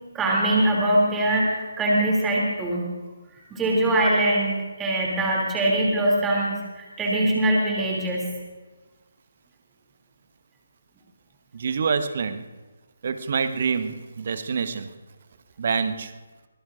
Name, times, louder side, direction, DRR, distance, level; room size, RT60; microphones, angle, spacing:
voice 1, 0.1-2.9 3.5-8.3, right 1 dB, 10° right, -3 dB, 2.6 m, -22 dB
voice 2, 11.5-12.4 13.0-14.9 15.6-16.1, right 5 dB, 40° right, 10 dB, 1.1 m, -26 dB
24.0 x 20.5 x 2.5 m, 1.2 s
figure-of-eight pair, 145°, 0 cm